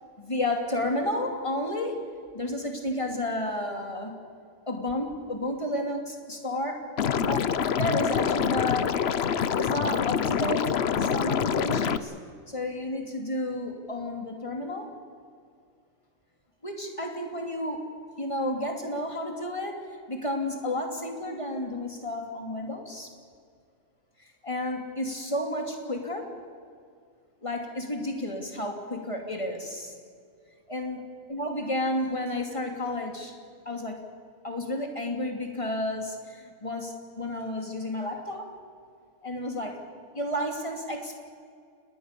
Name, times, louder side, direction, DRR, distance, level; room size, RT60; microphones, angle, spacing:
voice 1, 0.2-2.0 2.3-4.2 4.7-6.9 7.2-9.0 9.5-12.1 12.5-15.0 16.6-17.9 18.2-23.1 24.2-26.4 27.4-30.0 30.7-31.0 31.3-33.3 33.6-34.1 34.4-38.5 39.2-39.8 40.1-41.2, left 1 dB, 20° left, 3 dB, 3.0 m, -32 dB
Liquid, 7.0-12.0, left 7 dB, 50° left, 0.9 m, -26 dB
29.0 x 20.0 x 6.9 m, 2.2 s
omnidirectional pair, 1.5 m